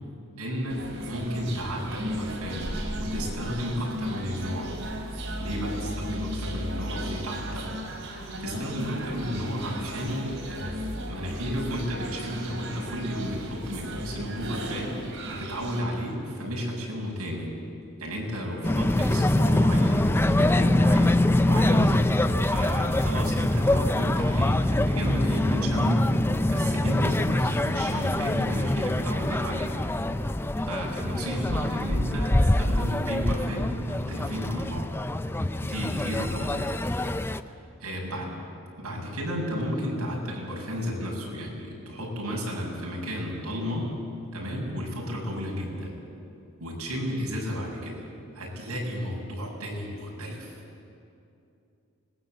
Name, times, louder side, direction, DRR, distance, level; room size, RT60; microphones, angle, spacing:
voice 1, 0.4-4.7 5.4-7.7 8.4-10.8 11.1-15.0 15.3-17.5 18.0-21.1 21.5-21.9 22.4-26.1 26.4-29.7 30.6-34.9 35.6-36.7 37.5-38.3 38.8-43.9 44.3-46.0 46.6-48.1 48.3-50.5, equal, 80° right, -2 dB, 7.4 m, -32 dB
sound 1, 0.7-15.8, equal, 60° right, 3.7 m, -35 dB
sound 2, 18.6-37.4, left 1 dB, 10° left, 0.5 m, -24 dB
25.5 x 20.5 x 8.0 m, 2.6 s
head